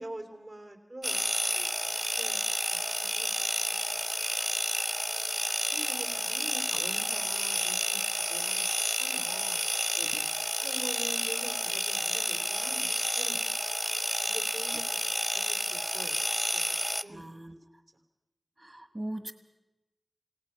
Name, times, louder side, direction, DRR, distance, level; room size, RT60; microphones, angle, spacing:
voice 1, 0.0-3.3 3.7-4.0 5.7-9.6 10.6-13.7 14.2-15.0 15.3-16.2 16.5-17.6, right 1 dB, 65° right, 6 dB, 3.2 m, -46 dB
sound 1, 1.0-17.0, equal, 5° right, 0.7 m, -30 dB
voice 2, 10.0-10.3 17.1-17.6 18.6-19.3, right 1 dB, 30° right, 9 dB, 1.5 m, -40 dB
27.5 x 17.5 x 5.8 m, 0.97 s
wide cardioid pair, 65°, 0 cm